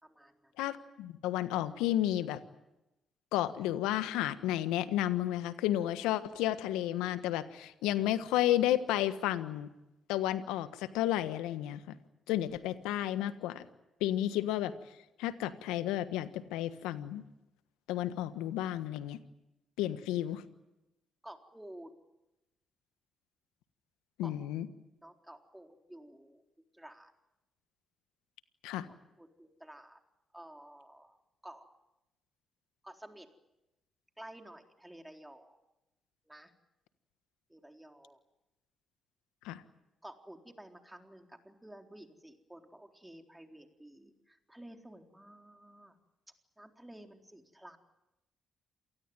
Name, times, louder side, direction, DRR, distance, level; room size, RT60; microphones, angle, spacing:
voice 1, 0.0-0.5 21.2-21.9 24.2-24.3 25.0-26.4 26.7-27.1 28.9-30.0 30.3-31.2 31.4-31.7 32.8-33.3 34.2-35.6 36.3-36.5 37.5-38.2 40.0-45.9 46.6-47.8, right 1 dB, 10° right, 4 dB, 3.9 m, -52 dB
voice 2, 0.6-2.4 3.3-9.7 10.1-11.8 12.3-13.7 14.0-14.7 15.2-17.2 17.9-19.2 19.8-20.4 24.2-24.7 28.6-28.9 39.4-39.6, left 13 dB, 80° left, 12 dB, 1.4 m, -32 dB
28.0 x 19.5 x 9.1 m, 0.94 s
hypercardioid pair, 50°, 0 cm